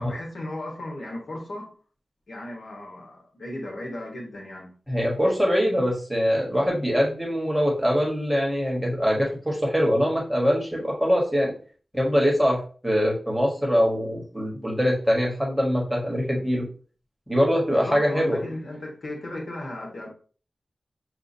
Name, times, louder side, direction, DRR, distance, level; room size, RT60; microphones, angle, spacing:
voice 1, 0.0-1.7 2.3-4.7 17.7-20.1, left 1 dB, 75° left, 1.3 m, -35 dB
voice 2, 4.9-11.5 11.9-16.7 17.3-18.4, equal, ahead, 1.4 m, -23 dB
6.4 x 2.5 x 2.7 m
wide cardioid pair, 105°, 0 cm